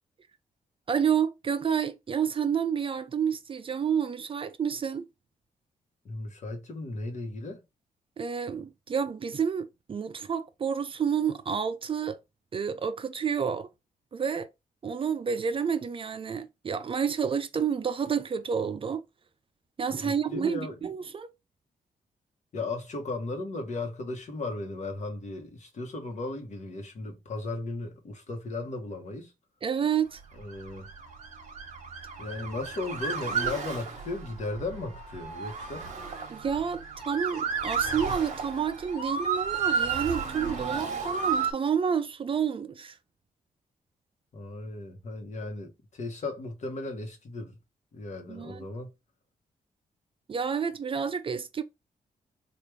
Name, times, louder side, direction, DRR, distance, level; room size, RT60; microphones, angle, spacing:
voice 1, 0.9-5.1 8.2-12.2 12.5-13.7 14.1-14.5 14.8-19.0 19.8-21.3 29.6-30.2 36.3-43.0 48.3-48.6 50.3-51.6, right 7 dB, 40° right, 0.4 m, -29 dB
voice 2, 6.0-7.6 20.0-20.7 22.5-29.3 30.4-30.9 32.2-35.9 44.3-47.6 47.9-48.9, left 2 dB, 55° left, 1.0 m, -36 dB
Motor vehicle (road) / Siren, 30.4-41.5, right 5 dB, 55° right, 1.0 m, -32 dB
3.4 x 2.4 x 3.2 m
cardioid pair, 90°, 15 cm